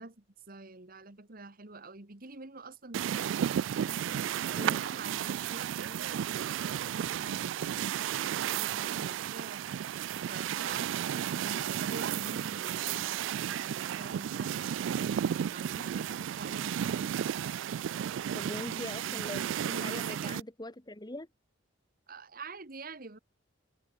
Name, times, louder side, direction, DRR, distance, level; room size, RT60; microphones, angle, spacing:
voice 1, 0.0-3.3 3.8-9.7 10.3-14.9 15.5-17.2 18.6-19.3 19.6-20.4 22.1-23.2, right 3 dB, 50° right, 1.8 m, -47 dB
sound 1, 2.9-20.4, right 9 dB, 85° right, 0.3 m, -33 dB
voice 2, 18.3-21.3, left 1 dB, 20° left, 2.0 m, -42 dB
head